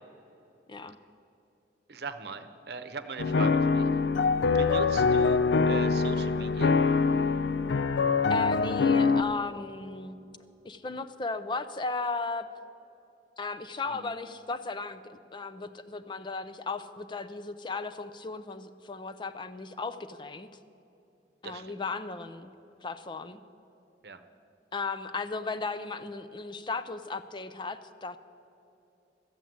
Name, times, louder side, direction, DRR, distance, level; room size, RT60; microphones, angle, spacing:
voice 1, 1.9-3.9 4.5-6.8 13.9-14.1 21.4-21.8 24.0-24.2, right 3 dB, 60° right, 10 dB, 0.8 m, -39 dB
sound 1, 3.2-9.2, left 4 dB, 85° left, 0.5 m, -24 dB
voice 2, 8.3-10.2 10.6-12.5 13.4-20.5 21.4-22.5 22.8-23.4 24.7-28.2, left 3 dB, 25° left, 11 dB, 0.4 m, -35 dB
13.5 x 7.7 x 9.3 m, 2.7 s
head